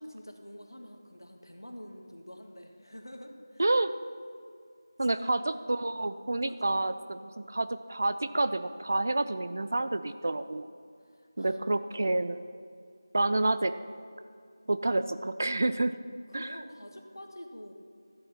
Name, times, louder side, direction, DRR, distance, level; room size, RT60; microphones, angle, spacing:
voice 1, 0.0-3.6 5.0-5.2 6.5-6.6 11.0-11.6 16.3-17.7, equal, 75° left, 4 dB, 1.6 m, -47 dB
voice 2, 3.6-3.9 5.0-10.7 11.4-12.4 13.1-13.7 14.7-15.9 16.3-16.6, right 2 dB, 40° right, 12 dB, 0.4 m, -29 dB
13.0 x 7.8 x 5.6 m, 2.3 s
figure-of-eight pair, 165°, 2 cm